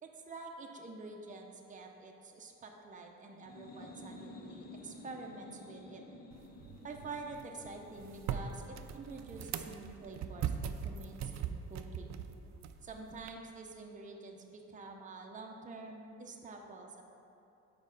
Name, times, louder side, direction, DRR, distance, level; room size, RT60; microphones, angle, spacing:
voice 1, 0.0-6.0 6.8-12.2 12.8-17.0, right 3 dB, 25° right, 1 dB, 0.7 m, -48 dB
sound 1, 3.3-10.8, left 2 dB, 30° left, 0.6 m, -53 dB
sound 2, 6.3-13.3, right 8 dB, 65° right, 0.4 m, -41 dB
5.3 x 4.3 x 5.2 m, 2.8 s
cardioid pair, 90°, 30 cm